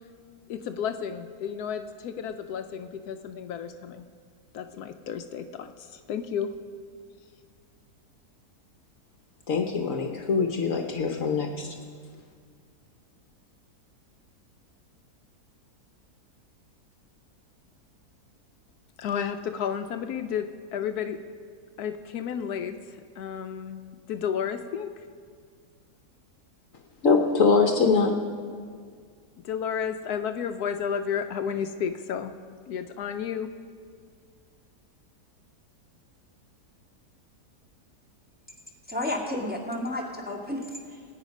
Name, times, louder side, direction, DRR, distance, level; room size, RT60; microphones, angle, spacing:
voice 1, 0.5-4.1 4.5-6.5 19.0-21.2 21.8-23.8 24.1-24.9 29.4-32.3 32.7-33.5, left 7 dB, 80° left, 8 dB, 1.1 m, -32 dB
voice 2, 9.5-11.7 27.0-28.1, left 4 dB, 60° left, 4 dB, 1.2 m, -23 dB
voice 3, 38.9-41.0, left 1 dB, 5° right, -3 dB, 1.9 m, -32 dB
19.0 x 9.2 x 5.3 m, 2.1 s
omnidirectional pair, 1.7 m